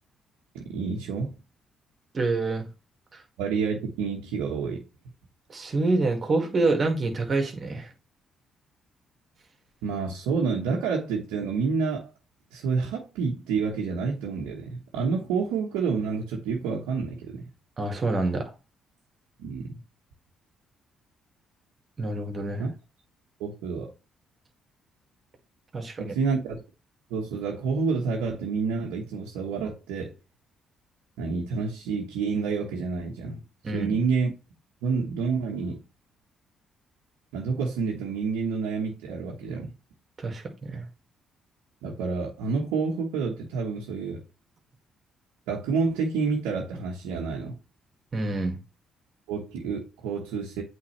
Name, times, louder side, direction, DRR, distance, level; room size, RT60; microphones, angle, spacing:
voice 1, 0.5-1.3 3.4-4.8 9.8-12.1 12.5-17.5 19.4-19.7 22.6-22.7 23.4-23.9 26.0-26.6 27.1-30.1 31.2-33.4 33.7-34.3 34.8-35.8 37.3-39.7 41.8-44.2 45.5-47.6 49.3-50.6, right 5 dB, 90° right, 1.1 m, -29 dB
voice 2, 2.1-2.7 3.1-3.2 5.5-7.9 17.8-18.5 22.0-22.7 25.7-26.2 33.6-34.0 40.2-40.9 48.1-48.6, right 2 dB, 45° right, 2.0 m, -27 dB
8.4 x 3.7 x 3.2 m
supercardioid pair, 65°, 0 cm